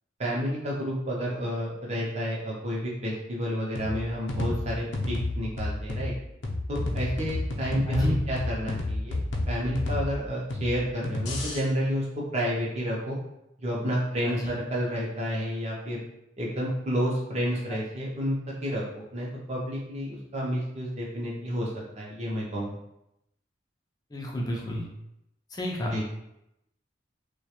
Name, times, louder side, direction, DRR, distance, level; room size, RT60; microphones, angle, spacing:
voice 1, 0.2-6.1 6.7-13.2 13.6-16.0 16.4-18.8 19.1-21.7 22.0-22.8 25.9-26.0, equal, 35° right, -3 dB, 0.6 m, -30 dB
sound 1, 3.8-11.6, left 2 dB, 70° left, 0.5 m, -31 dB
voice 2, 24.1-24.9 25.5-26.0, equal, 20° left, -1 dB, 0.4 m, -31 dB
2.3 x 2.1 x 2.8 m, 0.83 s
head